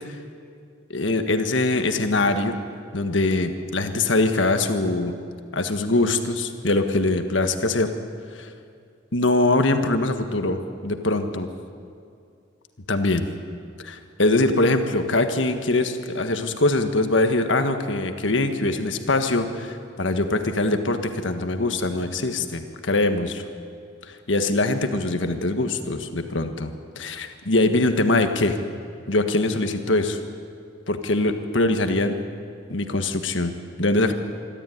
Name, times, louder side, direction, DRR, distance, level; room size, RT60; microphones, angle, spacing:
voice 1, 0.9-2.6 2.9-5.2 5.5-7.9 8.4-8.5 9.1-11.5 12.9-13.2 13.8-23.4 24.3-28.6 29.1-30.2 30.9-32.2 32.7-34.1, left 2 dB, 75° left, 7 dB, 1.6 m, -23 dB
25.5 x 13.0 x 9.4 m, 2.4 s
head